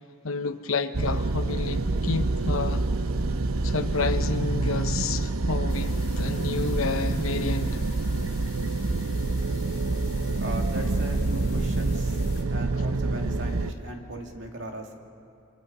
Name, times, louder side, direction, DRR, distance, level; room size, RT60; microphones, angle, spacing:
voice 1, 0.2-2.8 3.6-7.8, left 4 dB, 80° left, 0.9 m, -30 dB
sound 1, 0.9-6.0, equal, 40° right, 4.3 m, -51 dB
sound 2, 0.9-13.7, right 2 dB, 90° right, 0.9 m, -27 dB
sound 3, 5.7-12.4, left 8 dB, 60° left, 4.5 m, -49 dB
voice 2, 10.4-12.2 12.5-15.0, right 2 dB, 60° right, 2.4 m, -37 dB
29.0 x 24.0 x 5.5 m
head